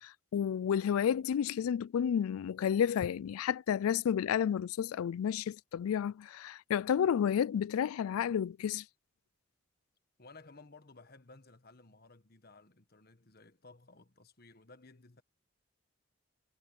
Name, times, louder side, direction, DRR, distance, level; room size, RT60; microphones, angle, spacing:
voice 1, 0.0-8.8, left 8 dB, 90° left, 0.3 m, -31 dB
voice 2, 10.2-15.2, left 3 dB, 45° left, 1.4 m, -57 dB
head